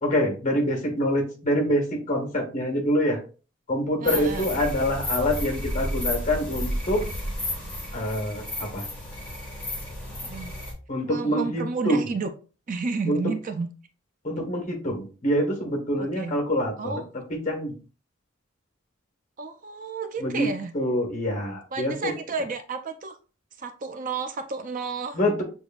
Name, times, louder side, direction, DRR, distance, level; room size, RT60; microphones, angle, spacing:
voice 1, 0.0-3.2 3.7-7.0 7.9-8.9 10.9-12.0 13.1-13.3 14.2-16.9 17.3-17.7 20.2-20.5 20.7-22.1 25.1-25.4, equal, 40° left, 3 dB, 1.5 m, -25 dB
sound 1, 4.0-10.7, left 1 dB, 5° left, 2.1 m, -32 dB
voice 2, 4.0-4.5 10.2-10.5 11.0-12.3 12.7-13.7 16.0-16.4 16.8-17.0 19.4-20.7 21.7-23.2 23.6-25.2, right 4 dB, 40° right, 8 dB, 0.4 m, -31 dB
7.9 x 2.6 x 2.3 m, 0.36 s
head